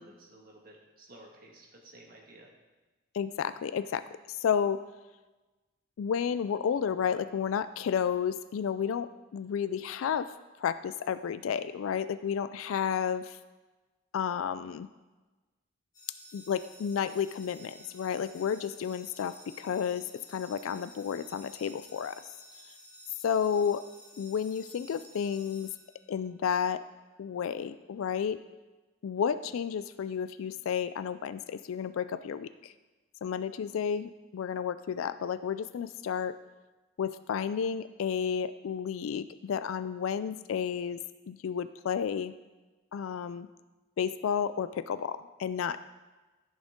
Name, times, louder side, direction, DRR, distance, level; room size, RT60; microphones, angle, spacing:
voice 1, 0.0-2.5, right 1 dB, 45° right, -1 dB, 1.7 m, -54 dB
voice 2, 3.1-4.8 6.0-10.3 10.6-13.4 14.1-14.9 16.3-22.3 23.2-23.9 24.2-25.7 26.1-26.8 27.2-28.4 29.0-32.7 33.2-36.4 37.0-41.0 41.3-42.3 42.9-43.5 44.0-45.8, left 7 dB, 80° left, 13 dB, 0.3 m, -31 dB
sound 1, 15.9-26.4, left 1 dB, 20° left, 3.2 m, -53 dB
14.5 x 6.3 x 3.6 m, 1.2 s
head